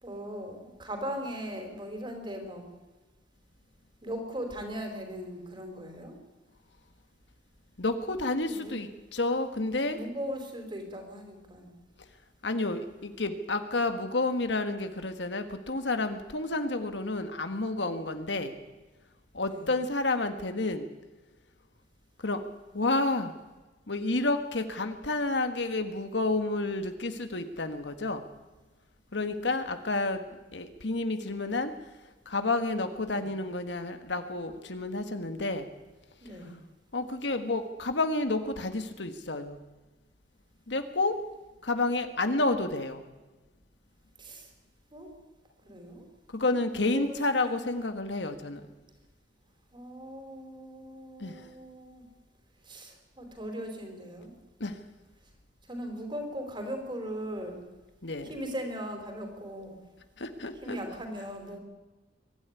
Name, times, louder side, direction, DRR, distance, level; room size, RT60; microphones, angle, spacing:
voice 1, 0.0-2.7 4.0-6.1 8.4-8.7 9.9-11.7 19.4-19.7 33.1-33.3 36.2-36.5 44.2-44.5 44.9-45.1 45.6-46.1 46.5-47.2 47.4-47.6 49.7-52.0 52.6-54.3 55.7-57.6 58.2-59.8 60.6-61.6, equal, 25° right, 4 dB, 4.7 m, -39 dB
voice 2, 7.8-10.0 12.4-18.6 19.3-20.9 22.2-22.4 22.7-23.3 23.9-28.2 29.1-31.7 32.2-35.7 36.9-39.6 40.7-41.2 41.6-43.0 46.3-48.7 51.2-51.5 54.6-54.8 58.0-58.3 60.2-60.8, left 2 dB, 70° left, 7 dB, 1.7 m, -30 dB
23.0 x 13.0 x 9.8 m, 1.2 s
head